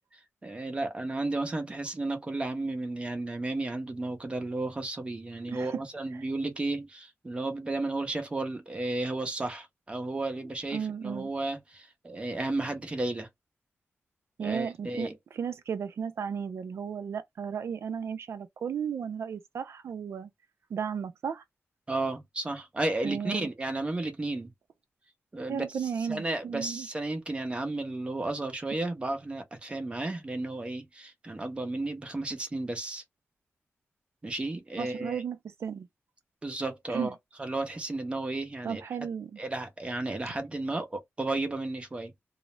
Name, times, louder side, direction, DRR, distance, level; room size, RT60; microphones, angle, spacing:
voice 1, 0.4-13.3 14.4-15.1 21.9-24.5 25.3-33.0 34.2-35.2 36.4-38.8 39.4-42.1, right 2 dB, 25° right, 0.7 m, -33 dB
voice 2, 5.5-5.8 10.7-11.3 14.4-20.3 20.7-21.4 23.0-23.5 25.5-26.9 34.8-35.9 36.9-37.1 38.6-39.4, right 7 dB, 65° right, 0.5 m, -34 dB
2.3 x 2.0 x 3.0 m
wide cardioid pair, 135°, 5 cm